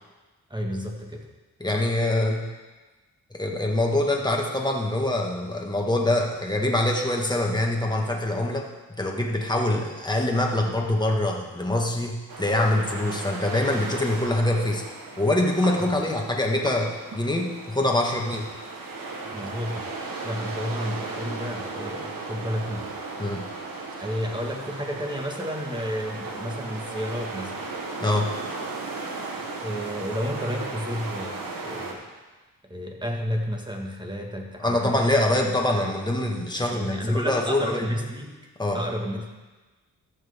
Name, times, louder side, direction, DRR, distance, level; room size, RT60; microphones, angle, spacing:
voice 1, 0.5-1.3 15.8-15.9 19.2-19.9 20.2-22.9 24.0-27.7 29.4-32.1 32.7-35.1 36.5-38.4 38.7-39.3, equal, 15° right, 1 dB, 1.8 m, -31 dB
voice 2, 1.6-2.5 3.3-8.7 9.0-14.8 15.2-18.5 23.2-23.5 28.0-28.3 34.6-37.9 38.6-38.8, left 1 dB, 10° left, 0 dB, 1.8 m, -24 dB
sound 1, 12.3-31.9, right 3 dB, 70° right, 1.5 m, -36 dB
14.0 x 6.5 x 3.7 m, 1.2 s
cardioid pair, 60°, 35 cm